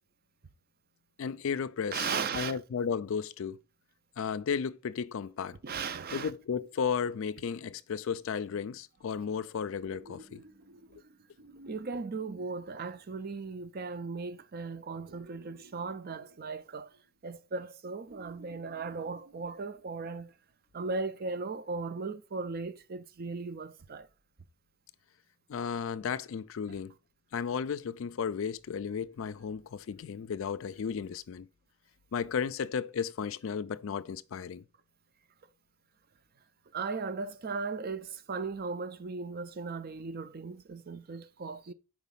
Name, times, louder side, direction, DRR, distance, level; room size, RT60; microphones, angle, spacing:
voice 1, 1.2-3.6 4.2-5.6 6.1-10.4 25.5-26.9 27.3-31.5 32.1-34.6, left 6 dB, 65° left, 0.4 m, -34 dB
voice 2, 1.9-2.5 5.6-6.3 11.7-16.9 17.2-20.3 20.7-24.1 36.7-41.7, right 4 dB, 45° right, 0.5 m, -37 dB
sound 1, 8.0-8.7 9.8-13.4 15.1-17.3 18.1-20.1 21.8-21.9, right 1 dB, 75° right, 1.0 m, -56 dB
4.9 x 4.1 x 5.4 m
head